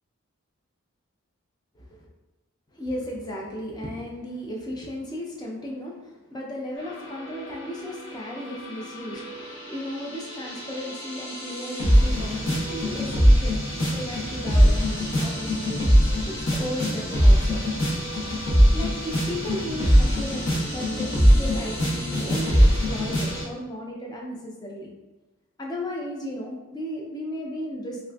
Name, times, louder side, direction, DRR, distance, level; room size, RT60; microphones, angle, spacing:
voice 1, 1.7-2.1 2.7-17.6 18.7-24.9 25.6-28.0, left 1 dB, 20° left, -2 dB, 0.4 m, -35 dB
sound 1, 6.8-23.4, equal, 70° left, 0.8 m, -22 dB
3.5 x 2.4 x 2.3 m, 1.1 s
head